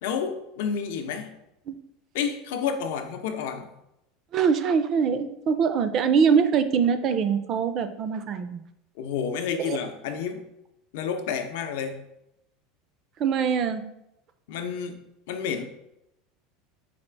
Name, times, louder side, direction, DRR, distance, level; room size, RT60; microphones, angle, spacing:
voice 1, 0.0-1.4 2.1-3.7 9.0-10.4 10.9-12.1 14.5-15.6, left 7 dB, 75° left, 6 dB, 0.6 m, -30 dB
voice 2, 4.3-8.6 9.6-9.8 13.2-13.8, right 6 dB, 40° right, 10 dB, 0.4 m, -23 dB
4.2 x 2.4 x 4.5 m, 0.84 s
supercardioid pair, 140°, 0 cm